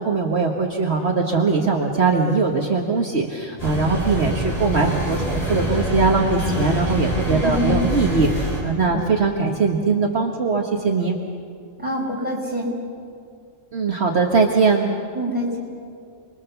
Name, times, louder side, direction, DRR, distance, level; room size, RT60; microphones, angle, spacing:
voice 1, 0.0-11.2 13.7-14.9, right 4 dB, 55° right, 0 dB, 1.7 m, -21 dB
sound 1, 3.6-8.6, equal, 25° left, 7.0 m, -25 dB
voice 2, 7.4-7.8 8.9-9.1 11.8-12.7 15.1-15.6, equal, 5° right, -3 dB, 5.2 m, -25 dB
29.0 x 22.0 x 7.0 m, 2.3 s
omnidirectional pair, 1.4 m